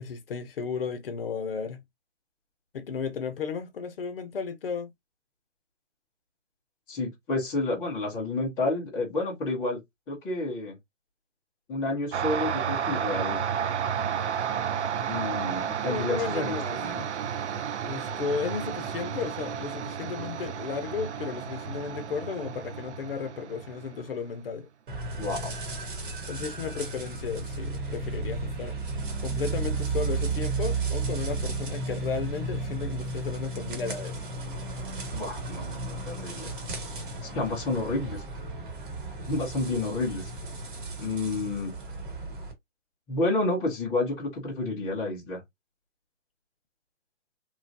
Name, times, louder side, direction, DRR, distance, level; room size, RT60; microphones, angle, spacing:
voice 1, 0.0-1.8 2.7-4.9 15.8-16.8 17.9-24.7 26.3-28.8 29.2-34.2, left 6 dB, 50° left, 0.7 m, -34 dB
voice 2, 6.9-9.8 10.1-10.7 11.7-13.4 15.1-17.1 25.2-25.6 35.1-36.5 37.3-38.2 39.3-40.3 41.0-41.7 43.1-45.4, left 2 dB, 5° left, 0.5 m, -30 dB
sound 1, 12.1-24.2, right 8 dB, 65° right, 0.5 m, -32 dB
sound 2, 24.9-42.5, right 3 dB, 45° right, 1.1 m, -33 dB
3.0 x 2.3 x 2.6 m
hypercardioid pair, 145°, 37 cm